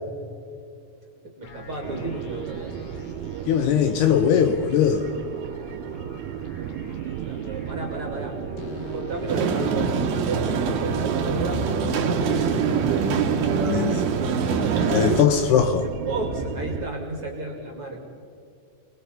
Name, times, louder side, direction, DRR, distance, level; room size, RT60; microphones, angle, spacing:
voice 1, 1.2-3.0 5.6-6.1 6.6-8.4 8.9-12.9 13.6-13.8 15.8-18.0, right 2 dB, 35° right, 1 dB, 2.5 m, -33 dB
sound 1, 1.4-16.9, left 2 dB, 55° left, 3.7 m, -38 dB
sound 2, 1.8-16.9, right 11 dB, 85° right, 3.1 m, -34 dB
voice 2, 3.5-5.1 13.6-14.1 14.9-15.9, left 8 dB, 75° left, 7 dB, 2.6 m, -20 dB
sound 3, 9.3-15.2, right 6 dB, 65° right, 3.1 m, -24 dB
26.5 x 20.5 x 5.6 m, 2.5 s
omnidirectional pair, 5.3 m